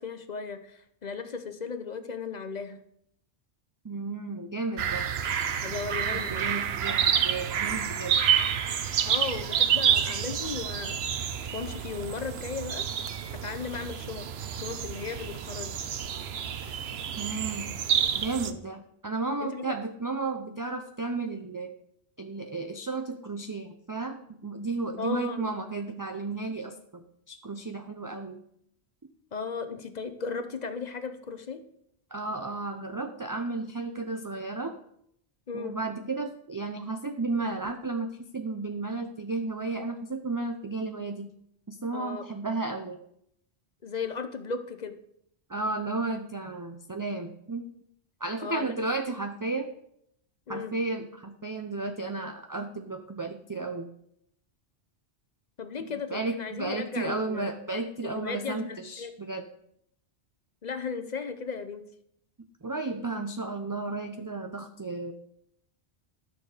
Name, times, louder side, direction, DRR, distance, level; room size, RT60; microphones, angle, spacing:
voice 1, 0.0-2.8 5.6-6.6 9.0-11.0 11.5-12.9 13.3-15.9 19.4-19.7 25.0-25.5 29.3-31.6 35.5-35.8 41.9-42.3 43.8-45.0 48.4-48.8 50.5-50.7 55.6-57.5 58.0-59.1 60.6-61.9, left 5 dB, 45° left, 9 dB, 0.8 m, -36 dB
voice 2, 3.8-5.1 6.1-8.2 17.2-17.7 18.1-21.7 22.2-28.4 32.1-34.8 35.5-41.3 41.7-43.0 45.5-47.7 48.2-49.7 50.5-53.9 56.1-59.5 62.6-65.1, right 3 dB, 25° right, 5 dB, 0.4 m, -33 dB
sound 1, 4.8-18.5, right 8 dB, 70° right, 0.9 m, -29 dB
11.5 x 6.8 x 4.9 m, 0.73 s
omnidirectional pair, 1.1 m